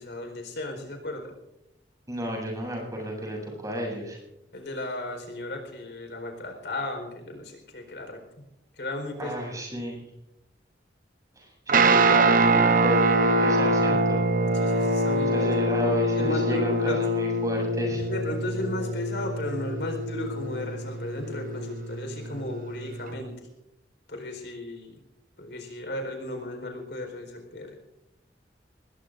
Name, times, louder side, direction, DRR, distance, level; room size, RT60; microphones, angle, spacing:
voice 1, 0.0-1.4 4.5-8.4 8.8-9.4 14.5-15.5 15.8-17.0 18.0-23.5 24.1-25.0 25.4-27.7, left 2 dB, 75° left, 4 dB, 4.4 m, -35 dB
voice 2, 2.1-4.2 9.2-10.0 11.4-13.2 13.4-14.2 15.3-18.0, equal, 20° right, -1 dB, 7.9 m, -32 dB
Guitar, 11.7-23.1, right 2 dB, 50° right, 0.9 m, -24 dB
26.5 x 20.5 x 2.6 m, 0.88 s
head